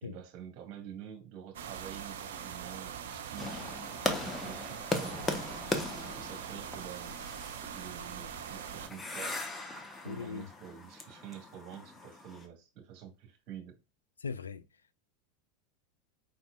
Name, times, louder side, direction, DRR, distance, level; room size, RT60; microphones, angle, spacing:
voice 1, 0.0-3.7 4.2-5.4 6.2-7.2 7.7-9.4 10.0-13.8, right 9 dB, 50° right, 1.8 m, -48 dB
sound 1, 1.5-8.9, right 8 dB, 70° right, 0.6 m, -42 dB
sound 2, 3.4-12.5, left 2 dB, 15° left, 1.1 m, -39 dB
voice 2, 10.1-10.5 14.2-14.6, left 5 dB, 85° left, 0.3 m, -38 dB
5.3 x 4.2 x 2.4 m
hypercardioid pair, 85°, 0 cm